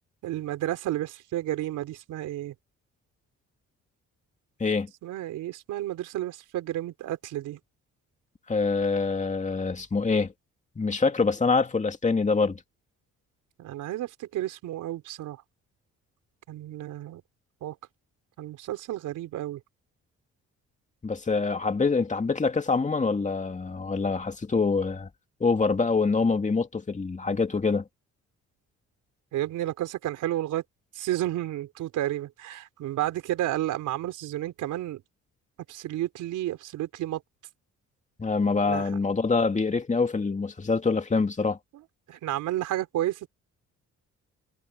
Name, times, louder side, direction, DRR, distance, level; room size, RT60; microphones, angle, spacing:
voice 1, 0.2-2.5 5.0-7.6 13.6-15.4 16.5-17.2 17.6-17.8 18.4-19.6 29.3-30.6 30.9-35.0 35.7-37.2 38.7-38.9 42.1-43.3, right 14 dB, 85° right, 4.2 m, -31 dB
voice 2, 8.5-10.3 10.8-12.6 21.0-25.1 25.4-27.8 38.2-41.6, left 4 dB, 25° left, 2.4 m, -25 dB
cardioid pair, 90°, 30 cm